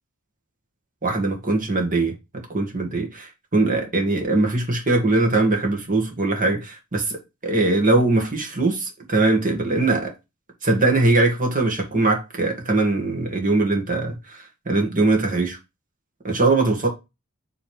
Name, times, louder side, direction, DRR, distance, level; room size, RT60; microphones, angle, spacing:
voice 1, 1.0-2.1 2.5-10.1 10.6-15.6 16.2-16.9, right 2 dB, 40° right, 2.0 m, -21 dB
7.7 x 3.9 x 3.4 m
head